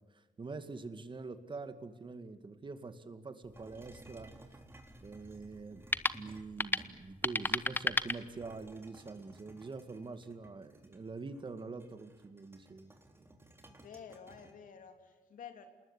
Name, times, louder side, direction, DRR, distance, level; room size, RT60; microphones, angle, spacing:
voice 1, 0.1-4.3 5.0-13.3, right 4 dB, 35° right, 10 dB, 2.2 m, -45 dB
sound 1, 3.4-8.8, left 2 dB, 15° left, 1.1 m, -36 dB
sound 2, 3.5-7.2 7.9-14.5, right 2 dB, 15° right, 3.5 m, -58 dB
voice 2, 13.7-15.7, left 7 dB, 80° left, 7 dB, 3.1 m, -51 dB
28.0 x 20.5 x 9.9 m, 1.2 s
cardioid pair, 100°, 14 cm